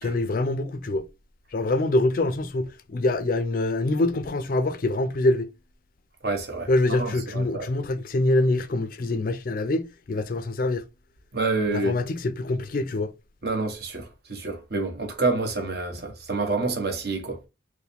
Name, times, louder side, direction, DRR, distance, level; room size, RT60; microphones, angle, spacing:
voice 1, 0.0-1.0 1.5-5.5 6.7-10.8 11.7-13.1, left 2 dB, 45° left, 0.4 m, -25 dB
voice 2, 6.2-7.7 11.3-12.0 13.4-17.4, right 3 dB, 55° right, 1.0 m, -28 dB
4.7 x 2.1 x 3.4 m
head